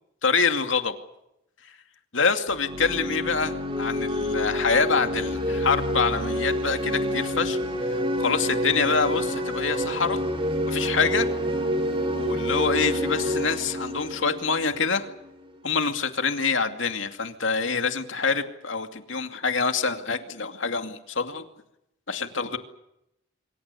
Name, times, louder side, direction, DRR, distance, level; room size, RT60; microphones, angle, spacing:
voice 1, 0.2-0.9 1.6-1.7 2.1-7.6 8.2-10.2 10.7-11.3 12.1-15.1 15.6-21.4 22.1-22.6, left 5 dB, 75° left, 7 dB, 2.5 m, -26 dB
sound 1, 2.5-15.2, equal, 30° right, 3.9 m, -28 dB
25.5 x 25.0 x 7.0 m, 0.84 s
head